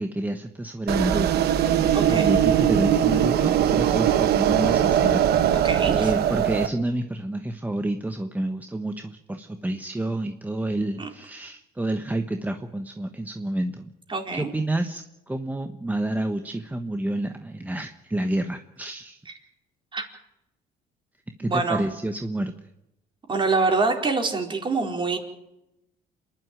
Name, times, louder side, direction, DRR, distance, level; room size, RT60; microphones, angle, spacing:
voice 1, 0.0-1.5 1.9-13.9 14.3-19.2 21.4-22.5, right 1 dB, 10° right, 6 dB, 1.3 m, -29 dB
sound 1, 0.9-6.7, right 10 dB, 70° right, 1.3 m, -21 dB
voice 2, 1.9-2.3 5.5-6.1 11.0-11.1 14.1-14.5 19.9-20.0 21.4-21.8 23.3-25.2, right 3 dB, 30° right, 3 dB, 4.4 m, -25 dB
28.0 x 11.5 x 9.1 m, 0.90 s
cardioid pair, 110°, 17 cm